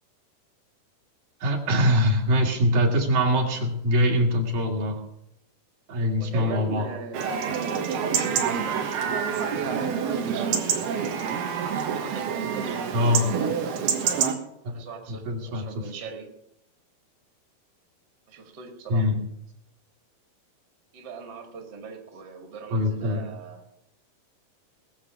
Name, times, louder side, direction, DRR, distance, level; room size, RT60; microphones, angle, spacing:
voice 1, 1.4-5.0 5.9-6.9 12.9-13.3 14.6-14.7 15.1-15.6 18.9-19.2 22.7-23.3, equal, 60° right, 0 dB, 3.5 m, -23 dB
voice 2, 6.2-8.9 10.0-11.1 11.9-12.8 14.7-16.3 18.3-19.0 20.9-23.6, right 4 dB, 35° right, 2 dB, 2.0 m, -40 dB
Chatter / Livestock farm animals working animals / Chirp tweet, 7.1-14.3, right 7 dB, 80° right, 3.5 m, -27 dB
20.5 x 7.5 x 6.1 m, 0.81 s
omnidirectional pair, 4.4 m